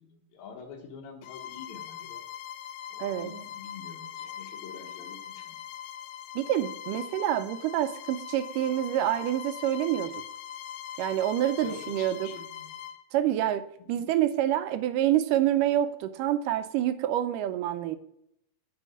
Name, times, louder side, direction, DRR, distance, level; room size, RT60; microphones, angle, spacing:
voice 1, 0.0-2.2 2.9-5.6 11.6-12.7 13.8-14.1, left 5 dB, 65° left, 3 dB, 2.5 m, -46 dB
Bowed string instrument, 1.2-13.0, left 10 dB, 85° left, 2.3 m, -41 dB
voice 2, 3.0-3.3 6.4-10.1 11.0-12.3 13.1-18.0, right 12 dB, 80° right, 11 dB, 2.1 m, -27 dB
8.3 x 5.3 x 6.3 m, 0.75 s
omnidirectional pair, 3.9 m